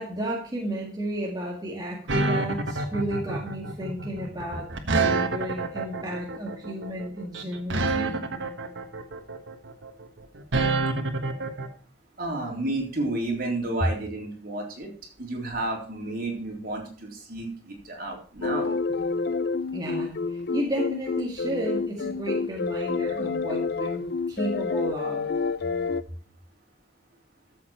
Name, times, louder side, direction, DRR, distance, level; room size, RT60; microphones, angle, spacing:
voice 1, 0.0-8.2 19.7-25.3, right 1 dB, 20° right, -2 dB, 1.9 m, -33 dB
sound 1, 2.1-11.7, right 3 dB, 85° right, 1.5 m, -27 dB
voice 2, 12.2-14.9 15.2-18.7, right 2 dB, 50° right, 0 dB, 3.7 m, -31 dB
sound 2, 18.4-26.0, left 4 dB, 60° left, 0.5 m, -28 dB
13.5 x 7.4 x 4.4 m, 0.44 s
head